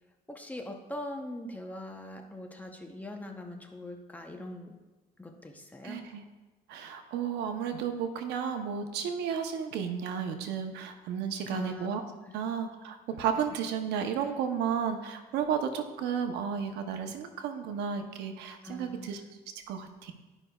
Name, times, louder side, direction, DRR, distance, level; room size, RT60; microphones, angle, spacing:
voice 1, 0.3-4.8 5.2-6.1 11.5-11.9 12.2-12.4 18.6-19.1, left 1 dB, 10° left, 3 dB, 0.8 m, -42 dB
voice 2, 5.8-6.2 6.7-12.0 12.3-19.2 19.7-20.1, right 7 dB, 85° right, 7 dB, 0.8 m, -33 dB
12.0 x 5.4 x 2.3 m, 1.2 s
cardioid pair, 110°, 17 cm